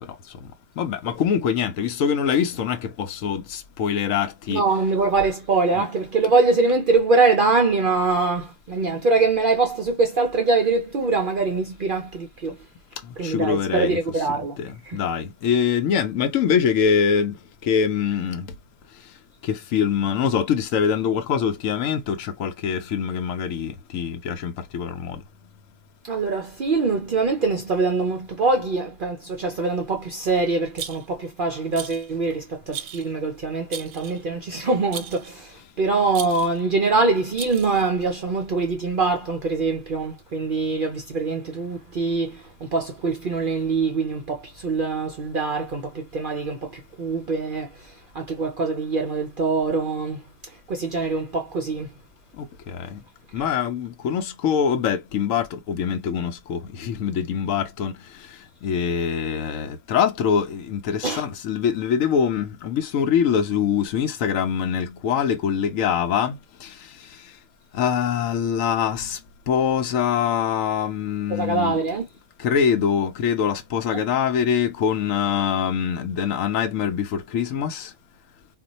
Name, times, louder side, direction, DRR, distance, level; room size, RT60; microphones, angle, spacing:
voice 1, 0.8-4.6 13.2-14.0 14.6-17.3 17.7-18.5 19.4-25.2 52.7-53.0 53.3-57.9 58.6-66.4 66.6-66.7 67.7-69.2 69.5-71.8 72.4-77.9, left 7 dB, 75° left, 0.9 m, -24 dB
voice 2, 4.5-12.6 13.2-14.6 14.8-15.0 26.0-51.9 61.0-61.2 71.3-72.1 73.9-74.0, right 3 dB, 60° right, 0.5 m, -23 dB
Rattle, 30.8-31.3 31.7-32.1 32.7-33.1 33.7-34.2 34.9-35.3 36.1-36.6 37.4-37.9, right 9 dB, 75° right, 0.9 m, -36 dB
2.4 x 2.2 x 4.0 m
omnidirectional pair, 1.5 m